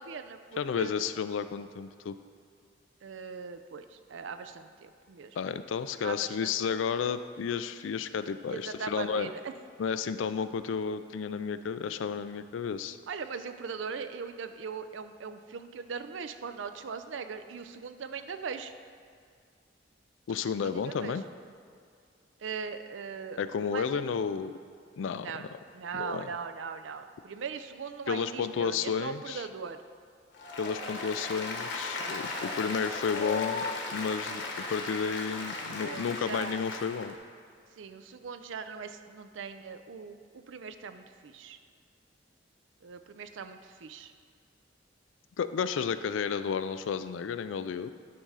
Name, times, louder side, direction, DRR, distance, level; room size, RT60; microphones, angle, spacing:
voice 1, 0.0-0.9 3.0-5.4 6.0-6.8 8.5-9.5 13.1-18.7 20.4-21.2 22.4-23.4 23.7-24.0 25.2-25.4 25.7-29.8 35.5-36.6 37.8-41.6 42.8-44.1, right 5 dB, 80° right, 9 dB, 0.5 m, -40 dB
voice 2, 0.6-2.2 5.4-9.3 9.8-13.0 20.3-21.2 23.4-24.5 25.0-25.5 25.9-26.3 28.1-29.4 30.6-33.6 33.9-37.1 45.4-47.9, left 6 dB, 85° left, 12 dB, 0.4 m, -32 dB
Applause, 30.3-37.1, left 3 dB, 65° left, 1.1 m, -36 dB
10.5 x 3.6 x 5.5 m, 2.3 s
head